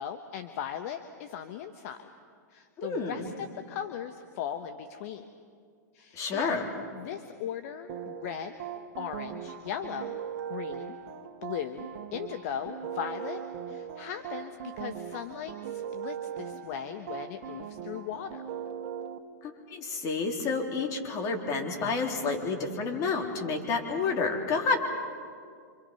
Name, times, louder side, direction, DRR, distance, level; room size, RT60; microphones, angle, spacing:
voice 1, 0.0-2.1 2.5-5.3 5.9-6.6 6.9-8.5 9.0-10.2 10.5-11.0 11.4-18.4, left 9 dB, 55° left, 8 dB, 1.3 m, -38 dB
voice 2, 2.8-3.2 6.1-6.7 19.4-24.8, left 4 dB, 35° left, 2 dB, 3.8 m, -30 dB
sound 1, 7.9-19.2, right 8 dB, 50° right, 1.8 m, -39 dB
27.0 x 26.0 x 5.8 m, 2.2 s
hypercardioid pair, 120°, 10 cm